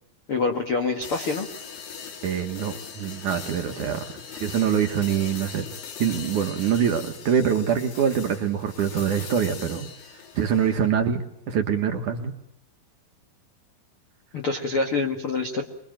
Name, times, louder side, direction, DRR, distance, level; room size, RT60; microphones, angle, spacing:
voice 1, 0.3-1.5 14.3-15.6, left 3 dB, 75° left, 5 dB, 1.2 m, -26 dB
sound 1, 1.0-10.9, left 7 dB, 55° left, 4.3 m, -40 dB
voice 2, 2.2-5.7 6.0-9.9 10.4-12.3, right 8 dB, 70° right, 5 dB, 1.9 m, -24 dB
26.0 x 22.5 x 9.0 m, 0.78 s
omnidirectional pair, 5.7 m